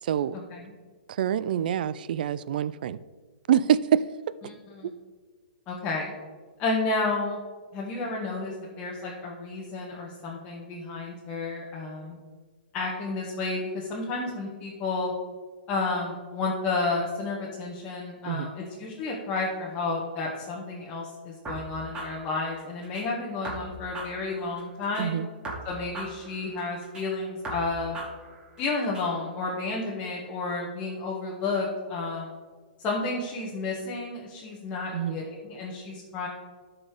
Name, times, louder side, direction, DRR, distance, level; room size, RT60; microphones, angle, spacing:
voice 1, 0.0-0.4 1.1-3.0 3.5-4.1 4.8-4.9 18.3-18.5 25.0-25.3 34.9-35.2, right 9 dB, 60° right, 17 dB, 0.4 m, -26 dB
voice 2, 5.7-6.1 6.6-7.4 7.7-12.2 12.7-15.1 15.7-25.2 25.6-28.0 28.6-32.4 32.8-36.3, left 3 dB, 25° left, -4 dB, 1.5 m, -31 dB
sound 1, 21.5-23.1 23.4-25.1 25.4-27.1 27.4-29.1, right 2 dB, 15° right, 2.4 m, -39 dB
12.5 x 4.4 x 4.9 m, 1.5 s
hypercardioid pair, 130°, 5 cm